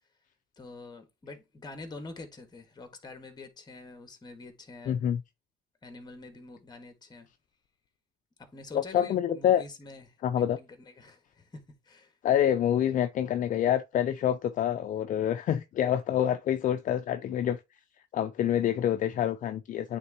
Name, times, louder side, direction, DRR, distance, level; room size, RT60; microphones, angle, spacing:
voice 1, 0.6-5.0 5.8-7.3 8.4-10.2 10.6-12.2, left 2 dB, 25° left, 1.7 m, -46 dB
voice 2, 4.9-5.2 8.7-9.6 10.2-10.6 12.2-17.6 18.1-20.0, left 10 dB, 50° left, 0.5 m, -27 dB
8.9 x 3.6 x 3.0 m
cardioid pair, 110°, 17 cm